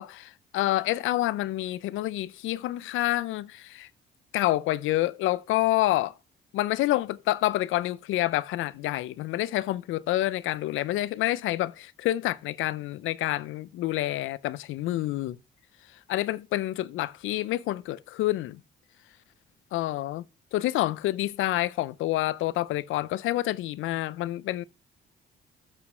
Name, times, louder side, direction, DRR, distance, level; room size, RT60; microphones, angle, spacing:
voice 1, 0.0-3.9 4.3-6.1 6.5-15.4 16.1-18.6 19.7-20.2 20.5-24.6, left 15 dB, 85° left, 0.5 m, -28 dB
8.3 x 5.1 x 6.1 m
cardioid pair, 90°, 20 cm